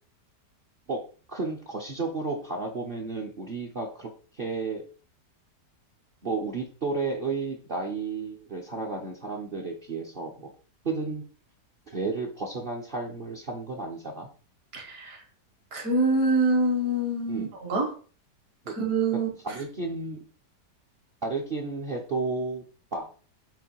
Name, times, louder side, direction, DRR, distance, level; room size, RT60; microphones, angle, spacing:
voice 1, 1.3-4.8 6.2-10.5 10.8-11.2 11.9-14.3 17.3-17.5 18.6-18.7 19.1-19.2 19.4-20.2 21.2-22.6 22.9-23.0, right 3 dB, 40° right, 1 dB, 0.9 m, -32 dB
voice 2, 14.7-15.2 15.7-17.9 18.7-19.3, right 2 dB, 60° right, 1 dB, 2.2 m, -25 dB
7.2 x 3.3 x 4.6 m, 0.39 s
omnidirectional pair, 1.8 m